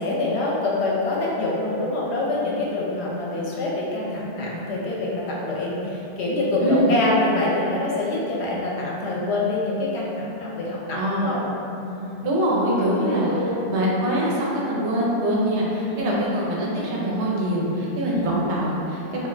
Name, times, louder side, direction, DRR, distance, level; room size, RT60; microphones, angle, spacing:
voice 1, 0.0-11.4 11.8-12.2 12.8-13.6 15.9-16.3 18.1-18.3, left 2 dB, 75° left, -4 dB, 0.9 m, -26 dB
voice 2, 10.9-11.3 12.2-19.3, equal, 80° right, -5 dB, 0.9 m, -24 dB
2.3 x 2.1 x 3.7 m, 3.0 s
omnidirectional pair, 1.1 m